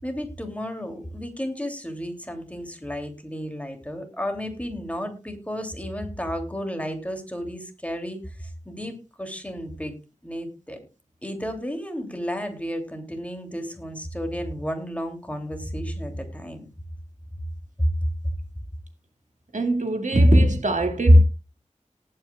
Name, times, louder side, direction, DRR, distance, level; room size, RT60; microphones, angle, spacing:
voice 1, 0.0-9.9 10.2-10.8 11.2-16.7 17.8-17.9, equal, 10° left, 2.8 m, -32 dB
voice 2, 19.5-21.2, equal, 80° right, 2.0 m, -17 dB
18.5 x 8.8 x 2.3 m
wide cardioid pair, 65°, 13 cm